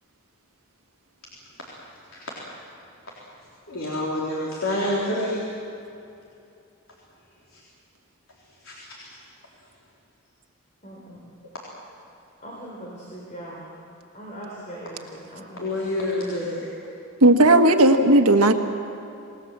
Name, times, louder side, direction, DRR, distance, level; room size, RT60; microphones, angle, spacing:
voice 1, 3.7-5.5 7.5-7.6 8.6-9.2 15.6-16.7, left 1 dB, 70° left, -5 dB, 3.7 m, -28 dB
voice 2, 10.8-11.3 12.4-13.8 14.1-16.0, right 1 dB, 35° left, -3 dB, 3.9 m, -40 dB
voice 3, 17.2-18.5, right 1 dB, 90° right, 5 dB, 1.6 m, -15 dB
27.0 x 19.0 x 7.5 m, 2.7 s
head